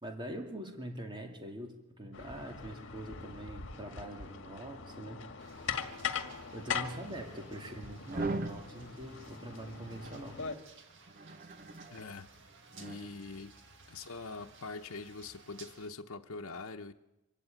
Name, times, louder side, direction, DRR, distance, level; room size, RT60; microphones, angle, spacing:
voice 1, 0.0-5.2 6.5-10.4, right 1 dB, 20° right, 2.4 m, -43 dB
sound 1, 2.1-10.6, left 6 dB, 60° left, 1.9 m, -41 dB
sound 2, 5.4-15.9, right 4 dB, 60° right, 2.0 m, -58 dB
sound 3, 8.1-8.6 9.7-10.2 11.1-12.0 12.7-13.1, right 2 dB, 40° right, 1.0 m, -39 dB
voice 2, 11.9-12.3 12.8-13.5 13.9-16.9, left 3 dB, 90° left, 0.9 m, -43 dB
25.0 x 14.0 x 9.2 m
head